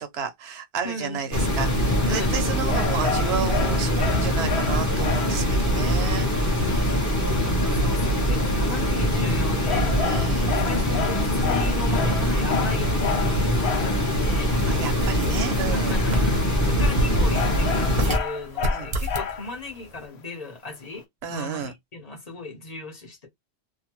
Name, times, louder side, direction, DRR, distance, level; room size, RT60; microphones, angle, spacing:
voice 1, 0.0-6.7 7.7-8.2 10.0-10.6 14.7-15.9 18.7-18.9 21.2-21.7, right 7 dB, 70° right, 1.0 m, -32 dB
voice 2, 0.8-1.2 2.0-2.3 7.4-10.1 10.6-14.6 15.7-21.0 21.3-23.3, left 2 dB, 35° left, 1.2 m, -36 dB
sound 1, 1.3-18.2, equal, 15° left, 0.8 m, -23 dB
sound 2, 2.7-5.5 9.7-14.0 17.3-19.6, left 6 dB, 75° left, 0.9 m, -31 dB
sound 3, 14.6-18.3 18.6-19.3, equal, 45° right, 0.8 m, -27 dB
2.7 x 2.2 x 3.0 m
omnidirectional pair, 1.1 m